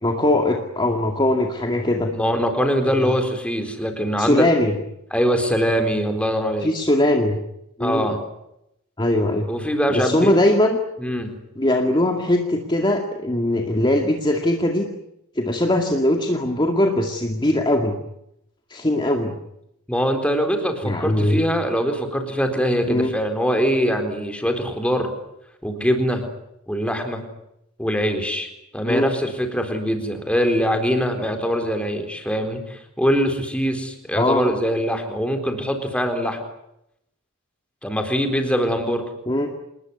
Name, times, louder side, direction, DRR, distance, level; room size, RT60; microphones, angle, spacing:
voice 1, 0.0-2.1 2.8-3.1 4.2-4.7 6.6-7.4 7.8-8.2 9.0-9.5 9.9-10.8 11.6-14.9 15.4-18.0 18.7-19.4 20.8-21.5 22.9-23.2 28.9-29.1 34.2-34.5 39.3-39.5, left 1 dB, 20° left, 3 dB, 2.2 m, -20 dB
voice 2, 2.1-4.4 5.1-6.7 7.8-8.2 9.5-10.3 11.0-11.3 19.9-25.1 25.6-26.2 26.7-27.2 27.8-36.4 37.8-39.0, equal, 5° left, 5 dB, 4.2 m, -23 dB
28.0 x 20.0 x 9.7 m, 0.82 s
head